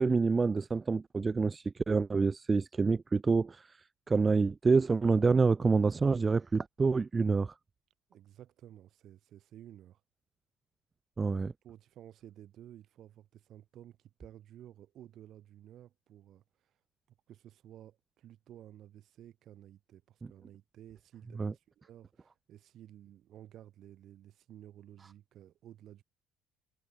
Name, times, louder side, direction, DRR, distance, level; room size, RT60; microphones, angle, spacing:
voice 1, 0.0-3.8 4.1-7.5 11.2-11.5 21.4-21.5, right 4 dB, 25° right, 0.4 m, -27 dB
voice 2, 8.1-10.0 11.2-16.4 17.3-26.0, right 12 dB, 55° right, 7.3 m, -54 dB
hypercardioid pair, 60°, 0 cm